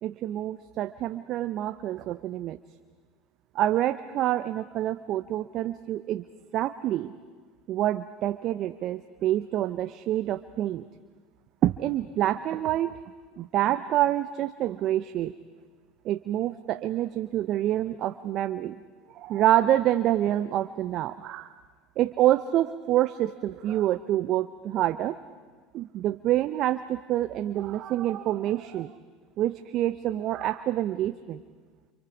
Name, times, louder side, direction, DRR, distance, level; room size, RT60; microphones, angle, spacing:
voice 1, 0.0-2.6 3.5-6.2 6.5-7.1 7.7-10.9 11.6-12.9 13.4-15.3 16.0-18.8 19.1-21.5 22.0-25.2 25.7-28.9 29.4-31.4, right 13 dB, 55° right, 12 dB, 0.7 m, -27 dB
29.5 x 28.0 x 5.1 m, 1.5 s
hypercardioid pair, 85°, 0 cm